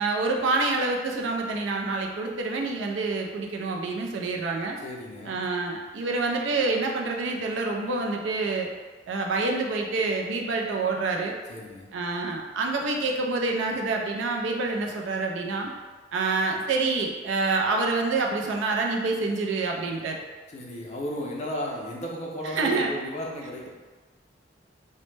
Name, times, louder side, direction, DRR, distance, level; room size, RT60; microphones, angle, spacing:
voice 1, 0.0-4.8 5.3-8.7 9.1-11.4 11.9-15.7 16.1-20.2 22.6-22.9, right 3 dB, 80° right, 1 dB, 0.4 m, -27 dB
voice 2, 4.8-5.4 11.5-11.9 20.5-23.7, equal, 40° left, -2 dB, 0.4 m, -34 dB
2.1 x 2.0 x 3.1 m, 1.4 s
head